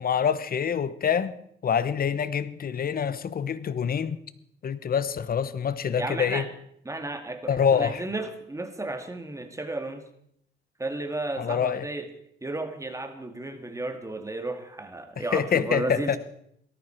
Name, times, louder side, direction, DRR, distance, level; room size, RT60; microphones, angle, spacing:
voice 1, 0.0-1.3 1.6-4.2 4.6-6.5 7.5-8.0 11.4-11.9 15.2-16.2, left 7 dB, 50° left, 1.0 m, -26 dB
voice 2, 6.0-6.5 6.9-10.0 10.8-12.1 12.4-16.2, right 2 dB, 15° right, 2.0 m, -33 dB
17.5 x 13.5 x 4.5 m
cardioid pair, 90°, 20 cm